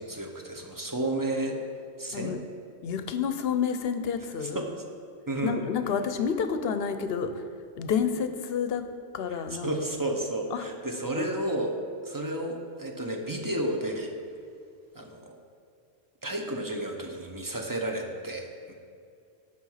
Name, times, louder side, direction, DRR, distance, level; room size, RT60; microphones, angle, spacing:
voice 1, 0.0-1.6 2.0-2.4 4.5-4.7 5.3-5.6 9.6-11.7 12.0-14.1 14.9-15.4 16.2-18.7, right 1 dB, 20° right, 2 dB, 0.8 m, -32 dB
voice 2, 2.8-4.6 5.4-7.5 7.8-8.9 9.1-9.7 10.5-10.6 11.2-11.3, left 7 dB, 70° left, 9 dB, 0.8 m, -29 dB
7.5 x 6.0 x 5.6 m, 2.3 s
omnidirectional pair, 1.1 m